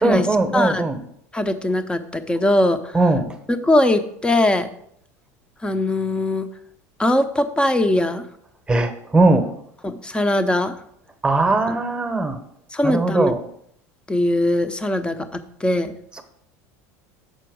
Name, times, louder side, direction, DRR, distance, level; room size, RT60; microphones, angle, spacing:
voice 1, 0.0-1.0 2.9-3.4 8.7-9.5 11.2-12.4 12.8-13.4 16.1-16.2, right 2 dB, 10° right, 7 dB, 1.0 m, -19 dB
voice 2, 0.5-0.9 1.3-2.8 3.5-4.7 5.6-6.5 7.0-8.2 9.8-10.7 12.7-13.3 14.1-15.9, left 1 dB, 10° left, 9 dB, 0.8 m, -20 dB
6.9 x 4.4 x 6.2 m, 0.71 s
hypercardioid pair, 90°, 8 cm